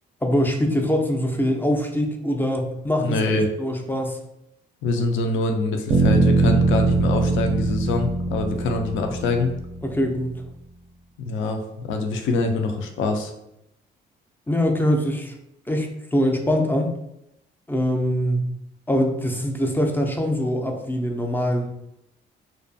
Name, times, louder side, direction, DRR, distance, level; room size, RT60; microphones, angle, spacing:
voice 1, 0.2-4.2 9.8-10.4 14.5-15.3 15.7-16.9 17.7-18.4 18.9-21.7, equal, 10° left, 2 dB, 0.3 m, -23 dB
voice 2, 3.0-3.5 4.8-9.5 11.2-11.6 11.9-13.3, left 2 dB, 80° left, 4 dB, 0.4 m, -24 dB
sound 1, 5.9-9.9, right 3 dB, 55° right, 0.4 m, -21 dB
2.4 x 2.2 x 2.5 m, 0.82 s
cardioid pair, 90°, 20 cm